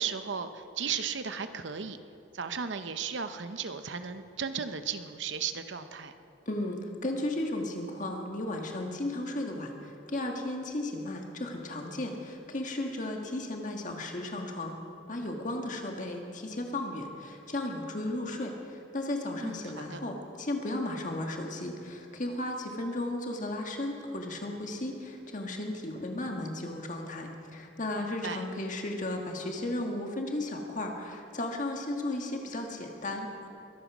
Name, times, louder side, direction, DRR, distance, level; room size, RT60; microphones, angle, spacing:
voice 1, 0.0-2.0 2.3-6.1 19.4-20.0 28.2-28.4, right 6 dB, 70° right, 9 dB, 0.8 m, -35 dB
voice 2, 6.4-14.8 15.1-33.5, left 1 dB, 40° left, 2 dB, 1.6 m, -35 dB
22.5 x 9.2 x 6.1 m, 2.7 s
head